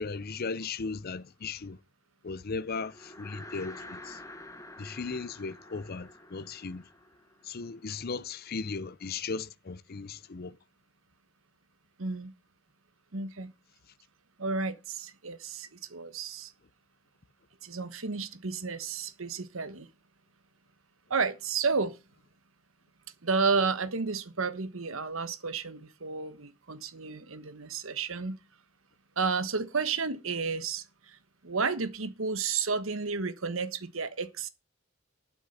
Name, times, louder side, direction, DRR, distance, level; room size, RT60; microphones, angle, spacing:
voice 1, 0.0-1.8 2.2-4.2 4.8-6.8 7.4-10.6, left 4 dB, 50° left, 0.6 m, -37 dB
sound 1, 2.7-8.2, left 2 dB, 15° left, 1.3 m, -48 dB
voice 2, 12.0-12.3 13.1-13.5 14.4-16.5 17.6-19.9 21.1-22.0 23.2-28.4 29.2-31.2 31.4-34.5, right 4 dB, 75° right, 1.3 m, -32 dB
11.5 x 6.1 x 7.1 m
head